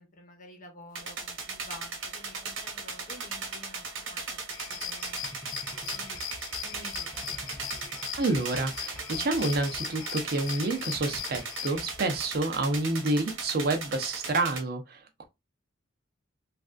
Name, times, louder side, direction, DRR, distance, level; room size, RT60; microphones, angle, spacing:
voice 1, 0.0-4.4 4.7-5.3 5.7-6.2 6.6-7.4, left 2 dB, 40° left, 0.9 m, -50 dB
sound 1, 0.9-14.6, right 4 dB, 85° right, 1.2 m, -38 dB
sound 2, 4.5-11.9, left 12 dB, 80° left, 0.4 m, -40 dB
sound 3, 5.2-10.6 10.9-11.4 11.7-13.2, equal, 5° left, 0.3 m, -48 dB
voice 2, 8.2-15.2, right 2 dB, 50° right, 0.6 m, -29 dB
3.3 x 2.5 x 2.4 m
head